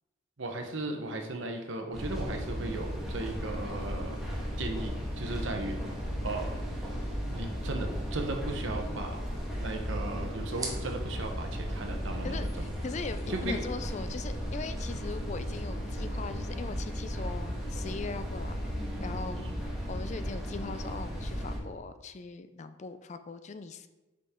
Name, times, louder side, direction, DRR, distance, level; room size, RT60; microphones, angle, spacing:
voice 1, 0.4-4.2 4.6-5.8 6.2-6.5 7.3-9.2 9.5-12.5 13.3-13.6 19.4-19.5, right 2 dB, 85° right, 3 dB, 1.0 m, -36 dB
sound 1, 1.9-21.6, equal, ahead, 1.4 m, -35 dB
sound 2, 9.1-16.8, right 3 dB, 20° right, 1.0 m, -49 dB
voice 2, 12.2-18.7 19.0-23.9, left 4 dB, 35° left, 10 dB, 0.4 m, -40 dB
6.9 x 5.2 x 3.7 m, 1.1 s
head